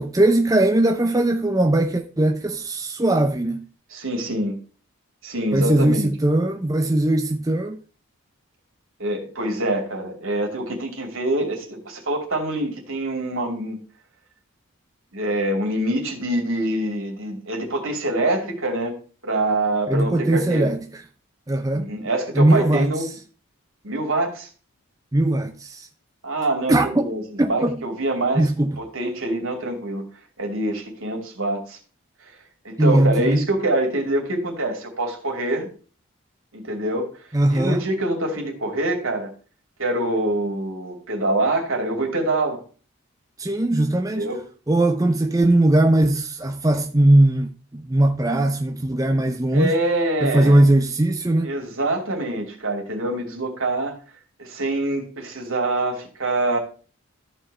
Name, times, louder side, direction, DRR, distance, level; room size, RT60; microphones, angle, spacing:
voice 1, 0.0-3.6 5.5-7.8 19.9-20.8 21.5-21.9 22.3-22.9 25.1-25.9 26.7-27.1 27.4-27.8 28.3-28.8 32.8-33.5 37.3-37.8 43.4-44.3 44.7-49.7 50.2-51.5, right 1 dB, 15° right, 0.6 m, -19 dB
voice 2, 3.9-4.6 5.2-6.1 9.0-13.8 15.1-18.9 19.2-20.8 21.7-23.1 23.8-24.5 26.2-28.5 28.8-30.0 30.4-31.8 32.6-35.7 36.5-37.1 37.5-39.3 39.8-42.6 44.1-44.4 49.5-50.6 51.4-53.9 54.4-56.6, right 1 dB, 65° right, 2.7 m, -25 dB
13.5 x 4.6 x 4.3 m
head